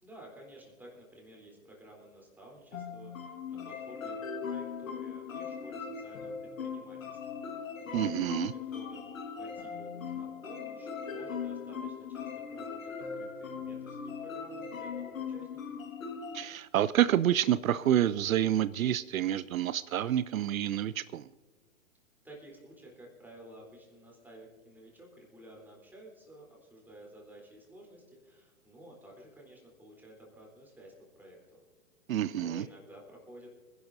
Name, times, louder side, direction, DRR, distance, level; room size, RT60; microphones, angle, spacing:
voice 1, 0.0-9.1 9.4-15.6 22.2-31.6 32.2-33.5, right 1 dB, 5° right, -2 dB, 3.6 m, -52 dB
sound 1, 2.7-16.4, left 6 dB, 70° left, 1.7 m, -39 dB
voice 2, 7.9-8.5 16.3-21.3 32.1-32.7, right 11 dB, 75° right, 17 dB, 0.5 m, -28 dB
26.0 x 11.0 x 2.7 m, 1.3 s
hypercardioid pair, 120°, 41 cm